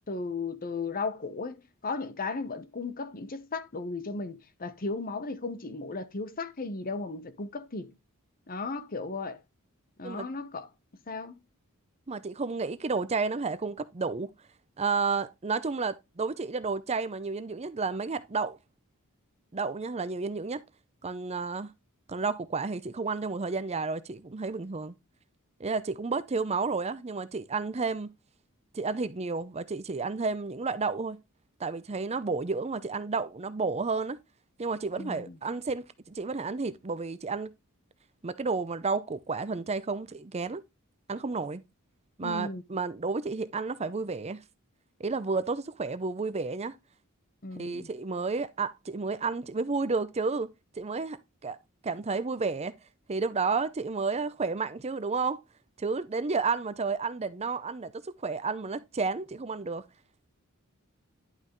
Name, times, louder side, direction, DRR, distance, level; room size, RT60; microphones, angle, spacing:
voice 1, 0.1-7.9 8.5-9.4 10.0-10.7 11.1-11.4 35.0-35.4 42.2-42.6 47.4-47.9, left 3 dB, 40° left, 1.0 m, -35 dB
voice 2, 12.1-14.3 14.8-18.6 19.5-20.6 21.0-21.7 22.1-24.9 25.6-28.1 28.7-31.2 31.6-34.2 34.6-37.5 38.2-40.6 41.1-41.6 42.2-44.4 45.0-46.8 47.6-50.5 50.8-51.6 51.8-52.7 53.1-55.4 55.8-59.9, right 4 dB, 30° right, 0.6 m, -31 dB
11.0 x 5.5 x 3.1 m
head